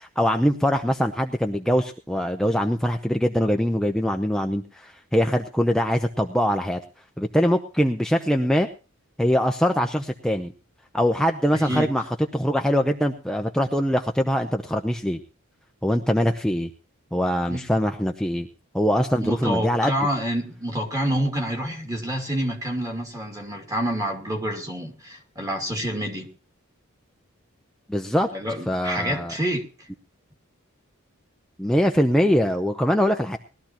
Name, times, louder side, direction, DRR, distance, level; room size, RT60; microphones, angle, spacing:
voice 1, 0.0-6.8 7.2-8.7 9.2-10.5 10.9-12.1 12.3-15.2 15.8-16.7 17.1-18.5 18.7-19.9 27.9-28.3 28.7-29.3 31.6-33.4, equal, 5° left, 0.7 m, -23 dB
voice 2, 11.5-11.9 17.5-17.6 19.2-26.3 28.3-29.9, equal, 15° right, 2.4 m, -28 dB
20.0 x 13.0 x 3.0 m
head